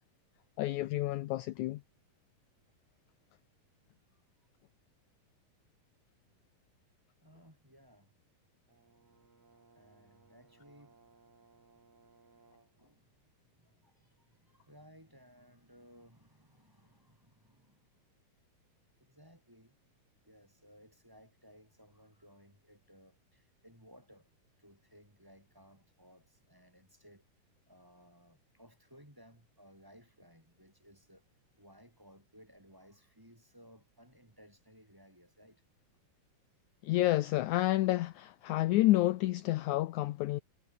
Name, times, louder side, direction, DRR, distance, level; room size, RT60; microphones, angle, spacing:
voice 1, 0.6-1.8 36.8-40.4, left 16 dB, 75° left, 1.9 m, -29 dB
voice 2, 7.2-8.1 9.7-11.0 12.7-18.1 19.0-19.8 20.2-24.3 24.6-27.3 27.7-31.2 31.6-35.6, equal, 5° right, 5.4 m, -60 dB
Brass instrument, 8.7-12.8, right 4 dB, 45° right, 6.0 m, -64 dB
omnidirectional pair, 3.9 m